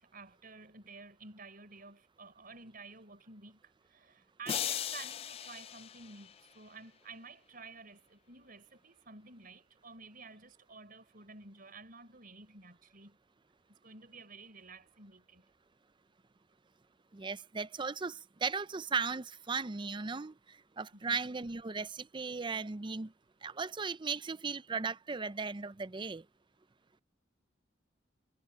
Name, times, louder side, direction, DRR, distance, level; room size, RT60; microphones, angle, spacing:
voice 1, 0.0-13.2 13.7-15.4 20.9-21.2, right 4 dB, 50° right, 5.5 m, -52 dB
sound 1, 4.5-6.7, left 10 dB, 30° left, 0.3 m, -38 dB
voice 2, 17.1-20.3 20.8-23.1 23.4-26.2, right 4 dB, 25° right, 0.5 m, -36 dB
head